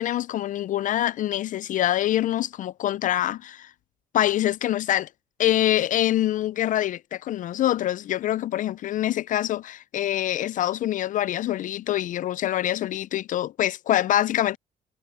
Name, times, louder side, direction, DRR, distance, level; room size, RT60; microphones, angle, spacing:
voice 1, 0.0-3.7 4.1-5.1 5.4-14.6, left 12 dB, 50° left, 0.4 m, -25 dB
cardioid pair, 110°, 17 cm